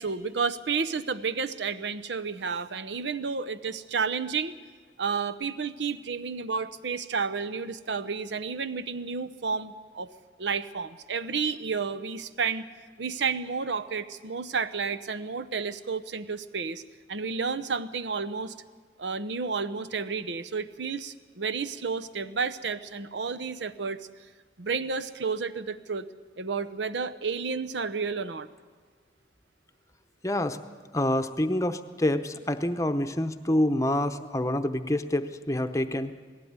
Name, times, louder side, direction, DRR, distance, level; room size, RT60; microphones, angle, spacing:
voice 1, 0.0-4.5 5.0-10.1 10.4-12.7 13.0-16.8 17.1-18.5 19.0-24.0 24.6-26.1 26.4-28.5, right 5 dB, 85° right, 12 dB, 0.8 m, -31 dB
voice 2, 30.2-30.6 30.9-36.1, left 1 dB, 20° left, 9 dB, 0.8 m, -27 dB
18.5 x 16.0 x 9.6 m, 1.5 s
head